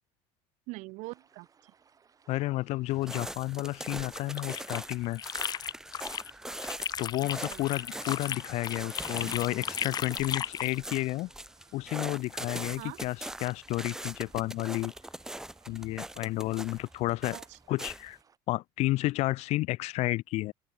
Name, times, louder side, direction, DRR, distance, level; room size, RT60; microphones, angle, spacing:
voice 1, 0.7-1.7 7.2-7.7 12.8-13.0 17.3-17.6, right 24 dB, 70° right, 0.8 m, -43 dB
sound 1, 1.0-18.4, right 6 dB, 25° right, 4.0 m, -65 dB
voice 2, 2.3-5.2 7.0-11.3 11.7-14.9 15.7-17.4 17.7-18.2 18.5-20.5, left 18 dB, 60° left, 0.6 m, -31 dB
sound 2, 2.9-18.1, right 1 dB, 5° right, 0.7 m, -42 dB
sound 3, 4.1-6.3 6.6-10.8, left 8 dB, 30° left, 0.9 m, -36 dB
open air
cardioid pair, 125°, 13 cm